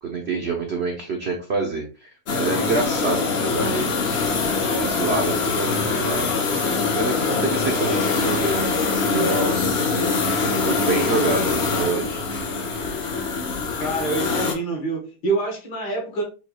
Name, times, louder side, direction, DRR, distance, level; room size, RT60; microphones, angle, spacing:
voice 1, 0.0-4.1 4.6-6.3 6.9-9.6 10.4-12.2, right 3 dB, 70° right, 1 dB, 0.6 m, -27 dB
sound 1, 2.3-14.5, left 4 dB, 60° left, 0.7 m, -23 dB
voice 2, 13.8-16.2, right 3 dB, 75° left, 1 dB, 2.0 m, -26 dB
5.4 x 2.3 x 3.0 m, 0.33 s
omnidirectional pair, 2.1 m